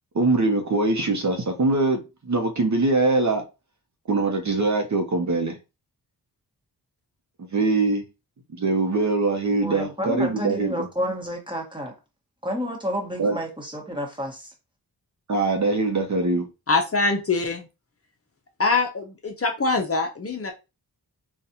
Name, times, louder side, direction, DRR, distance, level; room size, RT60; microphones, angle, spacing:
voice 1, 0.1-3.4 4.1-5.6 7.5-8.0 8.5-10.9 13.2-13.4 15.3-16.5, right 3 dB, 45° right, 0.8 m, -22 dB
voice 2, 9.6-11.9 12.4-14.5, equal, 10° right, 1.2 m, -30 dB
voice 3, 16.7-17.7 18.6-20.5, left 3 dB, 35° left, 0.7 m, -23 dB
4.0 x 2.4 x 2.7 m
wide cardioid pair, 75°, 39 cm